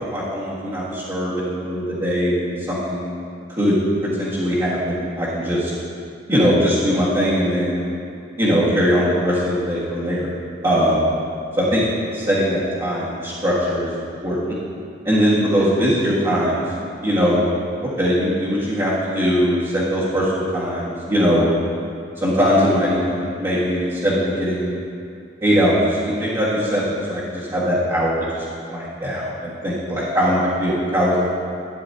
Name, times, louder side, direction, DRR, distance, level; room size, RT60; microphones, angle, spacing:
voice 1, 0.1-3.2 3.5-3.8 4.2-5.7 6.3-7.8 8.4-10.3 10.6-11.0 11.6-11.8 12.1-14.6 15.0-16.6 17.0-17.5 18.0-21.5 22.2-24.8 25.4-31.2, equal, 20° right, -11 dB, 1.6 m, -20 dB
12.5 x 9.3 x 2.8 m, 2.5 s
head